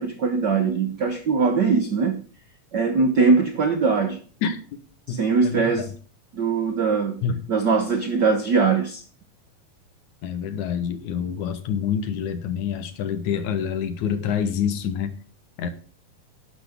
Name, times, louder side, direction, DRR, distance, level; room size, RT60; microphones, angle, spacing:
voice 1, 0.0-2.2 2.7-4.2 5.1-5.9 6.3-7.2 7.5-9.0, right 4 dB, 75° right, 0.9 m, -21 dB
voice 2, 5.1-5.9 7.2-7.4 10.2-15.2 15.6-15.7, left 7 dB, 70° left, 2.5 m, -27 dB
11.5 x 10.5 x 3.7 m
omnidirectional pair, 3.7 m